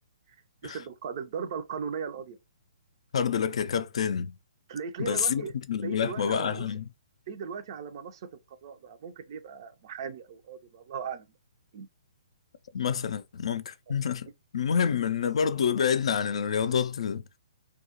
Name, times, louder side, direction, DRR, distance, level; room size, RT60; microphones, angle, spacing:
voice 1, 0.6-2.4 4.7-5.5 5.8-6.7 7.3-8.3 8.6-11.3 11.7-11.9, right 6 dB, 45° right, 0.4 m, -37 dB
voice 2, 3.1-4.4 5.0-6.9 12.7-14.3 14.5-17.2, left 7 dB, 65° left, 0.3 m, -28 dB
2.3 x 2.0 x 2.7 m
hypercardioid pair, 135°, 3 cm